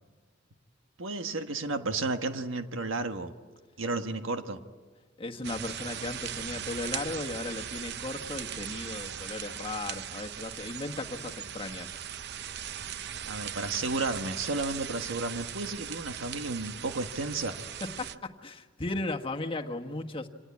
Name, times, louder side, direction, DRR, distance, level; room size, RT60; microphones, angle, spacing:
voice 1, 1.0-3.3 3.8-4.6 13.2-17.6, right 3 dB, 80° right, 7 dB, 1.5 m, -32 dB
voice 2, 5.2-11.9 17.8-20.3, left 2 dB, 30° left, 3 dB, 1.5 m, -36 dB
sound 1, 5.4-18.2, right 9 dB, 60° right, 0.7 m, -39 dB
27.0 x 19.0 x 9.7 m, 1.4 s
head